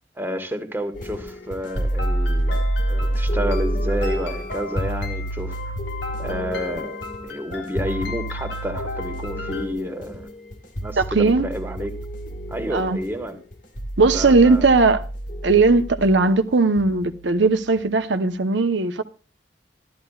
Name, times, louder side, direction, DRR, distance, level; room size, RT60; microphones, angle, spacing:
voice 1, 0.1-5.7 6.2-10.3 10.8-12.0 12.5-13.4 14.0-14.7 16.2-16.3, equal, 10° right, 1.5 m, -30 dB
sound 1, 0.9-18.1, right 1 dB, 50° left, 1.7 m, -29 dB
sound 2, 1.6-9.7, left 3 dB, 85° left, 3.4 m, -36 dB
voice 2, 11.0-11.5 12.7-13.0 14.0-15.0 15.4-19.0, right 3 dB, 85° right, 0.9 m, -18 dB
14.0 x 12.5 x 2.4 m
head